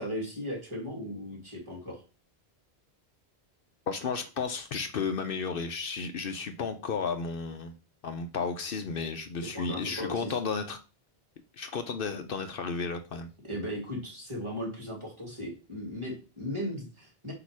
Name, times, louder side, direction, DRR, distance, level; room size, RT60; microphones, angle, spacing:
voice 1, 0.0-2.0 9.5-10.3 13.4-17.3, equal, 30° right, 2.2 m, -37 dB
voice 2, 3.9-7.7 8.0-10.8 11.6-13.3, left 5 dB, 65° left, 0.8 m, -33 dB
8.4 x 3.0 x 4.7 m
omnidirectional pair, 1.0 m